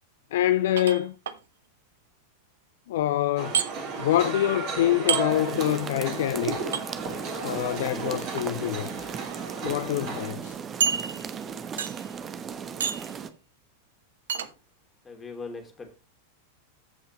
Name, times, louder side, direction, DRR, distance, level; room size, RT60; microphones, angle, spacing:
voice 1, 0.3-1.1 2.9-3.5 4.0-6.6 7.4-8.9 9.6-10.6, left 13 dB, 55° left, 0.4 m, -25 dB
sound 1, 0.8-1.4 3.5-3.7 5.1-5.3 6.7-6.8 8.2-8.5 9.2-9.3 9.7-9.8 10.8-11.4 11.8-12.1 12.8-13.1 14.3-14.5, right 7 dB, 65° right, 0.9 m, -28 dB
sound 2, 3.4-10.3, right 4 dB, 45° right, 3.4 m, -34 dB
sound 3, 5.3-13.3, right 7 dB, 25° right, 1.0 m, -37 dB
voice 2, 15.0-16.0, left 4 dB, 20° left, 3.0 m, -40 dB
15.0 x 5.6 x 3.0 m
figure-of-eight pair, 90°, 0 cm